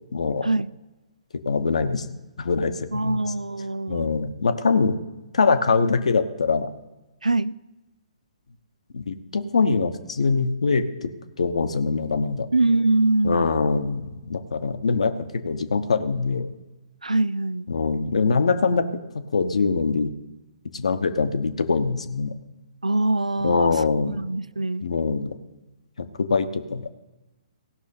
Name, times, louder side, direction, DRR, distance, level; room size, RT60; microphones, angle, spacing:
voice 1, 0.1-0.5 1.3-3.2 3.9-5.0 5.3-6.7 8.9-11.1 11.4-12.5 13.2-16.5 17.7-18.9 19.1-20.1 20.7-22.3 23.4-24.2 24.8-25.4 26.0-26.9, left 4 dB, 65° left, 10 dB, 1.0 m, -23 dB
voice 2, 2.9-4.1 7.2-7.6 12.5-13.5 17.0-17.7 22.8-23.7 24.1-24.9, right 2 dB, 90° right, 21 dB, 0.3 m, -23 dB
16.5 x 6.2 x 5.3 m, 1.1 s
figure-of-eight pair, 125°, 4 cm